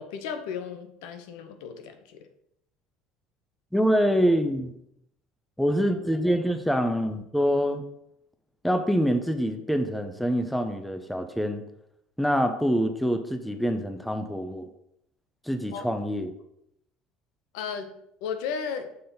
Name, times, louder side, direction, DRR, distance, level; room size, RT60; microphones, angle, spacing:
voice 1, 0.0-2.2 15.7-15.9 17.5-17.9 18.2-18.9, left 6 dB, 90° left, 7 dB, 0.8 m, -34 dB
voice 2, 3.7-4.7 5.6-7.8 8.6-11.6 12.2-14.7 15.5-16.3, equal, ahead, 7 dB, 0.5 m, -25 dB
6.8 x 4.0 x 3.9 m, 0.77 s
cardioid pair, 145°, 3 cm